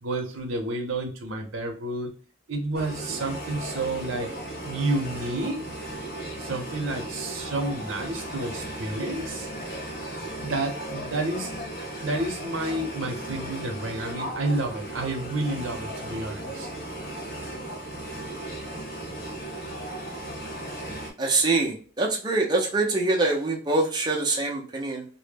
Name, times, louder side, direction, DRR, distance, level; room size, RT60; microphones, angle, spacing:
voice 1, 0.0-2.1 2.5-4.3 4.6-5.8 6.4-9.5 10.4-11.5 11.9-16.7, right 2 dB, 80° right, 4 dB, 0.6 m, -30 dB
sound 1, 2.7-21.1, right 1 dB, 50° left, 0.7 m, -36 dB
voice 2, 21.2-25.1, right 2 dB, 20° right, -2 dB, 0.4 m, -24 dB
2.0 x 2.0 x 3.2 m, 0.38 s
head